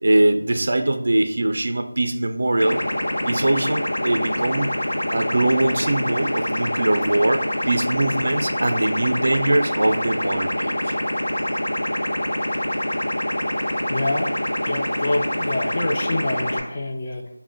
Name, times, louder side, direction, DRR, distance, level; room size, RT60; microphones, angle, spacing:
voice 1, 0.0-2.9 3.2-4.8 5.1-11.0, right 1 dB, 50° right, 7 dB, 0.3 m, -22 dB
sound 1, 2.6-16.6, left 1 dB, 70° left, 0.7 m, -25 dB
voice 2, 13.9-14.3 14.6-17.3, left 2 dB, 25° left, 2 dB, 0.3 m, -26 dB
4.1 x 2.1 x 3.8 m, 0.78 s
figure-of-eight pair, 175°, 0 cm